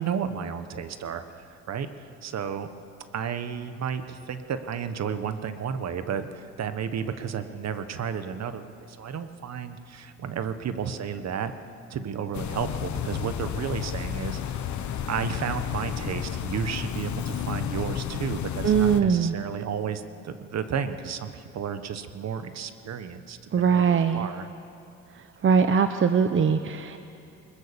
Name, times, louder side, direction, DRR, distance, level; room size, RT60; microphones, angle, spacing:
voice 1, 0.0-1.9 2.2-2.7 3.1-11.5 11.9-14.6 15.1-24.5, right 7 dB, 60° right, 10 dB, 1.4 m, -32 dB
sound 1, 12.3-19.0, left 9 dB, 70° left, 1.2 m, -32 dB
voice 2, 18.6-19.3 23.5-24.3 25.4-27.0, right 6 dB, 40° right, 9 dB, 0.9 m, -21 dB
21.5 x 21.0 x 6.9 m, 2.6 s
cardioid pair, 90°, 30 cm